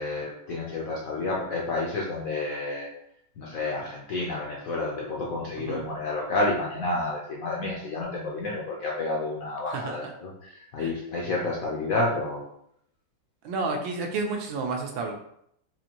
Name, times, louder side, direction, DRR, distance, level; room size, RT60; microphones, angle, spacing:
voice 1, 0.0-2.9 3.4-12.5, left 2 dB, 70° left, -3 dB, 0.8 m, -30 dB
voice 2, 13.4-15.1, right 3 dB, 85° right, 2 dB, 1.4 m, -30 dB
4.3 x 2.5 x 2.8 m, 0.73 s
omnidirectional pair, 2.1 m